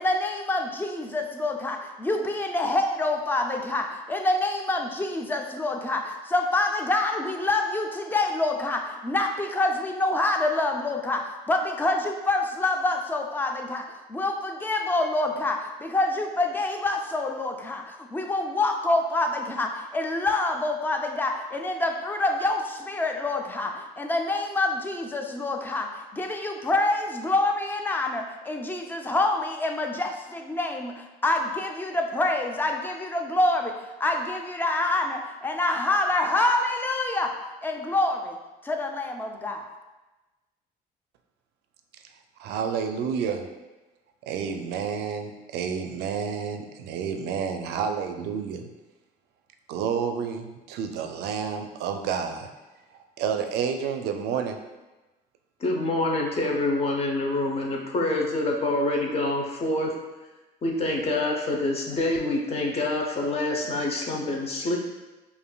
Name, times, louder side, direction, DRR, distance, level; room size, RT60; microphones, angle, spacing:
voice 1, 0.0-33.7 34.0-37.3 37.6-38.4 38.6-39.7, left 2 dB, 10° left, 3 dB, 0.4 m, -26 dB
voice 2, 42.4-43.4 44.2-48.7 49.7-52.5 53.2-54.6, right 7 dB, 75° right, 6 dB, 0.4 m, -30 dB
voice 3, 55.6-59.9 60.6-64.8, left 2 dB, 35° left, 0 dB, 0.7 m, -26 dB
5.1 x 2.5 x 2.2 m, 1.1 s
cardioid pair, 110°, 17 cm